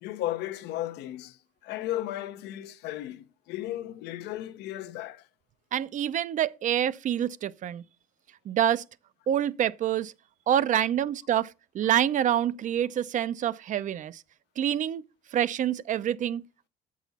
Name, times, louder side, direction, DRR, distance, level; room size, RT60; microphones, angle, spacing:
voice 1, 0.0-5.3, left 14 dB, 85° left, 0.8 m, -35 dB
voice 2, 5.7-7.8 8.5-8.8 9.3-10.1 10.5-14.2 14.6-15.0 15.3-16.4, right 10 dB, 50° right, 0.5 m, -27 dB
7.9 x 6.2 x 4.1 m
cardioid pair, 110°, 17 cm